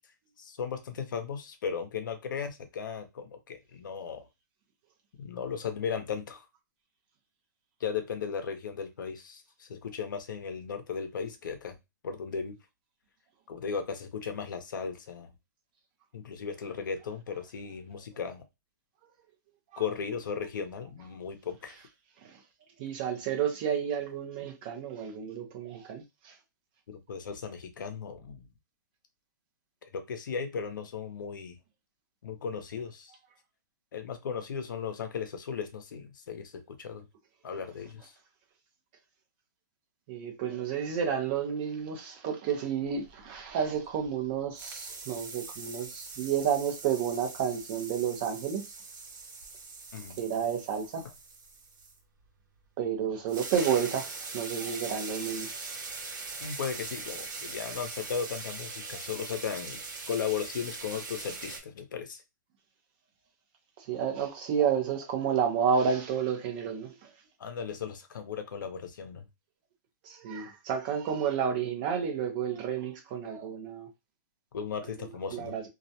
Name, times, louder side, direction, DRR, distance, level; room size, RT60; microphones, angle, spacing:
voice 1, 0.4-4.3 5.2-6.5 7.8-11.8 12.0-12.6 13.5-15.3 16.1-18.4 19.8-21.8 26.9-28.4 29.9-31.6 32.2-33.1 33.9-37.1 37.4-38.1 49.9-50.2 56.4-59.8 60.1-62.2 67.4-69.3 74.5-75.6, left 6 dB, 75° left, 0.6 m, -36 dB
voice 2, 22.8-26.3 40.1-48.6 50.2-51.0 52.8-54.1 54.3-55.5 63.8-67.1 70.0-73.9 75.3-75.6, right 7 dB, 30° right, 0.5 m, -31 dB
sound 1, 43.0-44.3 44.6-52.0 53.0-53.1 53.3-61.6, right 4 dB, 75° right, 0.9 m, -41 dB
2.3 x 2.1 x 2.7 m
hypercardioid pair, 165°, 10 cm